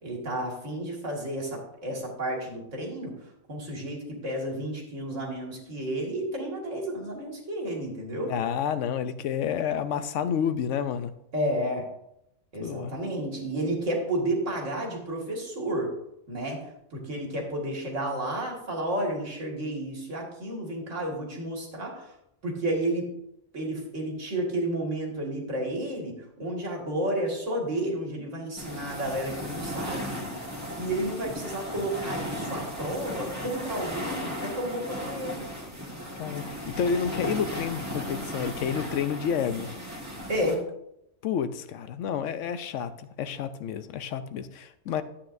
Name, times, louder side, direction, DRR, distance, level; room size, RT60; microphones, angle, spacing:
voice 1, 0.0-8.4 11.3-11.9 12.5-15.9 16.3-22.2 22.4-23.1 23.5-30.0 30.7-35.5 40.3-40.6, right 1 dB, 85° right, 0 dB, 2.3 m, -31 dB
voice 2, 8.3-11.1 12.6-12.9 36.1-39.7 41.2-45.0, left 7 dB, 85° left, 12 dB, 1.0 m, -30 dB
sound 1, 28.6-40.5, equal, 15° right, 1.5 m, -36 dB
11.5 x 8.6 x 2.6 m, 0.81 s
omnidirectional pair, 1.2 m